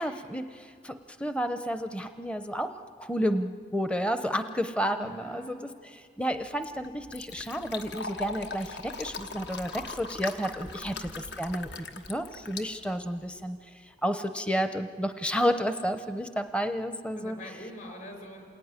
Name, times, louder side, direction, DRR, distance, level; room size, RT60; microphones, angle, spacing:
voice 1, 0.0-13.6 14.0-17.5, equal, 5° left, 8 dB, 0.6 m, -31 dB
voice 2, 4.9-5.6 10.8-11.2 17.2-18.4, left 1 dB, 50° left, 4 dB, 5.4 m, -44 dB
Fill (with liquid), 6.3-13.4, left 4 dB, 70° left, 1.4 m, -40 dB
28.0 x 19.5 x 9.7 m, 2.4 s
head